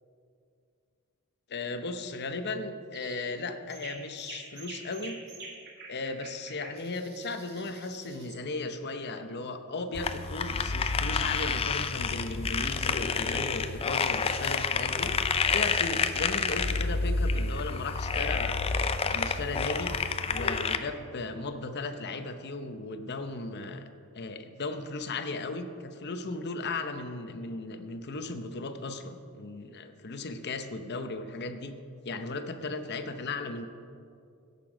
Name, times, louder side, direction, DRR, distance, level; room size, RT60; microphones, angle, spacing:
voice 1, 1.5-5.2 5.9-18.6 19.1-19.9 20.3-23.8 24.1-31.7 32.0-33.7, left 3 dB, 50° left, 8 dB, 0.8 m, -36 dB
sound 1, 2.9-3.3 3.7-8.4, right 3 dB, 50° right, 1.8 m, -47 dB
sound 2, 9.9-20.8, left 4 dB, 25° left, 0.4 m, -29 dB
16.5 x 6.8 x 5.0 m, 2.4 s
head